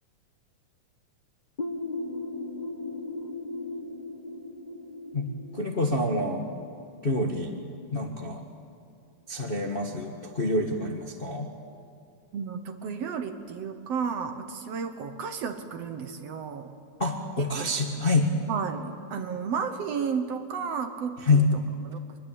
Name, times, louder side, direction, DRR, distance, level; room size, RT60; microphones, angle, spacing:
sound 1, 1.6-7.1, left 2 dB, 55° left, 0.4 m, -37 dB
voice 1, 5.5-6.4 7.0-7.5 7.9-8.4 9.3-11.5 17.0-18.3 21.2-21.5, left 2 dB, 30° left, 2 dB, 1.2 m, -26 dB
voice 2, 12.3-16.7 17.4-17.7 18.5-21.5 21.9-22.0, right 6 dB, 60° right, 7 dB, 2.0 m, -33 dB
24.5 x 21.5 x 8.7 m, 2.4 s
omnidirectional pair, 3.5 m